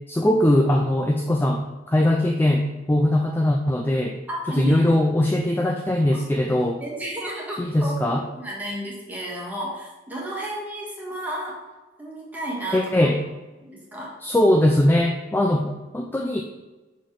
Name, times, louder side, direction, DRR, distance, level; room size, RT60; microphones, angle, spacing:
voice 1, 0.1-4.2 4.5-6.8 7.6-8.2 12.7-13.2 14.2-16.4, left 1 dB, 10° left, 2 dB, 0.3 m, -21 dB
voice 2, 4.3-4.9 6.1-6.2 6.8-11.6 12.0-13.1 13.7-14.1, right 1 dB, 10° right, -5 dB, 1.5 m, -32 dB
6.2 x 4.1 x 4.8 m, 1.2 s
head